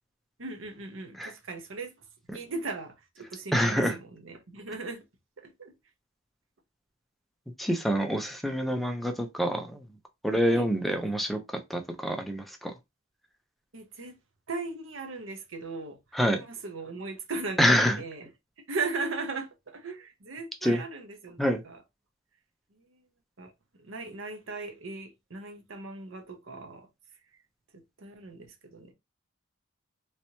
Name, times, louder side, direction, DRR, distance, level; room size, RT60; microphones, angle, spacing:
voice 1, 0.4-1.9 2.3-5.0 5.4-5.7 10.4-10.7 13.7-14.1 14.5-16.0 16.3-17.6 18.0-18.3 18.7-21.8 23.4-23.5 23.8-26.9 27.7-28.9, right 3 dB, 65° right, 0.9 m, -38 dB
voice 2, 3.5-4.0 7.6-9.8 10.2-11.4 11.7-12.7 16.1-16.4 17.6-18.0 20.6-20.8 21.4-21.6, equal, ahead, 0.5 m, -26 dB
3.2 x 2.9 x 2.8 m
head